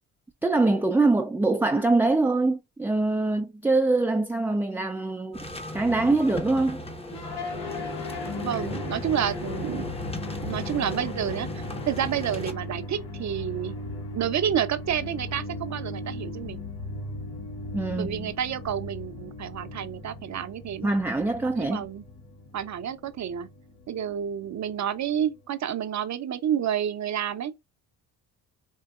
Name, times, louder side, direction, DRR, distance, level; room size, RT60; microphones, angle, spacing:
voice 1, 0.4-5.4 5.7-6.8 17.7-18.3 20.8-21.9, right 2 dB, 5° right, 0.4 m, -24 dB
sound 1, 5.3-12.5, left 1 dB, 15° left, 0.8 m, -37 dB
sound 2, 7.1-25.4, left 2 dB, 75° left, 1.4 m, -37 dB
voice 2, 8.3-9.9 10.4-13.8 14.1-16.6 18.0-21.0 21.6-22.1 22.5-23.5 23.9-27.5, right 9 dB, 45° right, 0.7 m, -29 dB
4.6 x 2.8 x 2.4 m
supercardioid pair, 60°, 40 cm